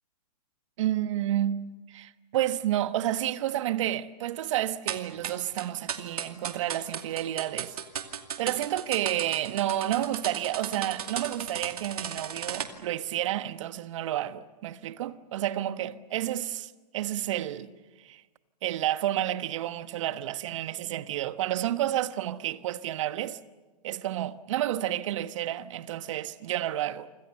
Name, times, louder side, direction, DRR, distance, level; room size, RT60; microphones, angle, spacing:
voice 1, 0.8-7.8 8.4-17.7 18.0-18.2 18.6-23.4 23.8-27.1, right 12 dB, 50° right, 1.3 m, -30 dB
sound 1, 4.9-12.7, right 8 dB, 70° right, 2.4 m, -35 dB
29.0 x 26.0 x 6.7 m
hypercardioid pair, 120°, 20 cm